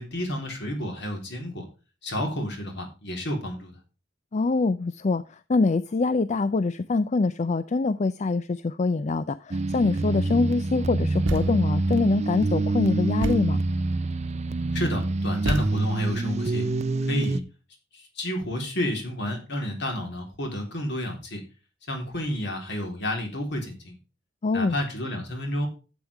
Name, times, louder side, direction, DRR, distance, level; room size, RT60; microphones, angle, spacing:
voice 1, 0.0-1.7 2.0-3.7 14.7-16.7 17.0-17.4 17.9-21.4 21.9-24.0 24.5-25.7, left 1 dB, 60° left, 3 dB, 3.7 m, -30 dB
voice 2, 4.3-13.6 24.4-24.8, left 3 dB, 35° left, 15 dB, 0.4 m, -24 dB
sound 1, 9.5-17.4, right 2 dB, 35° right, 0.5 m, -26 dB
Thump thud, 11.3-11.8 13.2-13.7 15.5-16.1, right 1 dB, 85° right, 1.3 m, -31 dB
11.5 x 8.0 x 3.4 m, 0.33 s
head